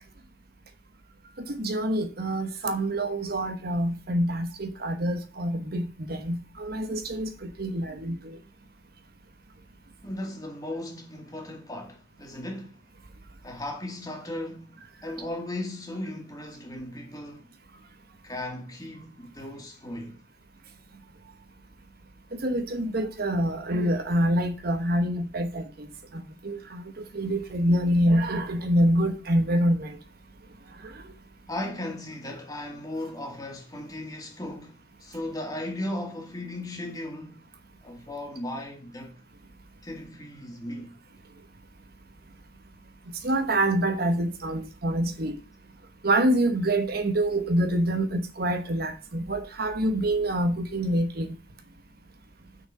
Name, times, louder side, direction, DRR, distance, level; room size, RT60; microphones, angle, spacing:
voice 1, 1.4-8.4 22.4-30.0 30.8-31.0 43.2-45.3 46.0-51.3, right 1 dB, 55° right, 1.1 m, -26 dB
voice 2, 10.0-12.8 13.4-17.5 18.2-20.2 31.5-37.4 37.8-39.2 39.8-41.0, left 1 dB, 20° left, 2.1 m, -36 dB
6.4 x 6.0 x 6.6 m
head